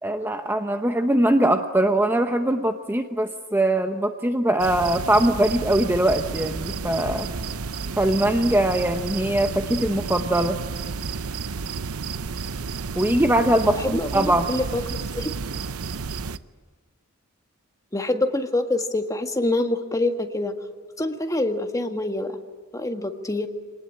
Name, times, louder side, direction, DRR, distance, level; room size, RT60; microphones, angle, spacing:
voice 1, 0.0-7.3 8.0-10.6 13.0-14.5, right 1 dB, 10° right, 6 dB, 0.9 m, -21 dB
sound 1, 4.6-16.4, right 5 dB, 90° right, 0.8 m, -31 dB
voice 2, 13.6-15.3 17.9-20.5 21.0-22.4 22.7-23.5, left 2 dB, 15° left, 5 dB, 1.7 m, -26 dB
25.5 x 19.0 x 8.8 m, 1.5 s
head